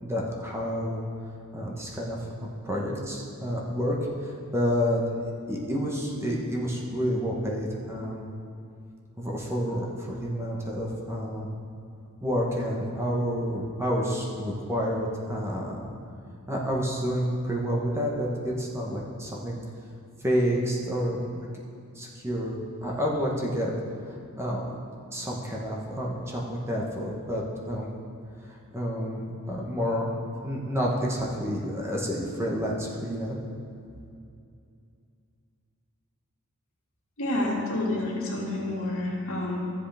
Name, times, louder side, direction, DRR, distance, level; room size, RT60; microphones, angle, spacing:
voice 1, 0.0-1.0 1.5-4.0 4.2-5.0 5.5-8.3 9.2-11.5 12.2-15.9 16.5-19.6 20.2-21.4 21.9-23.7 24.4-24.7 25.1-27.9 28.7-30.1 30.4-33.4, equal, 15° right, -3 dB, 1.1 m, -29 dB
voice 2, 37.2-39.6, left 1 dB, 70° left, -4 dB, 2.1 m, -29 dB
13.0 x 7.8 x 3.5 m, 2.5 s
head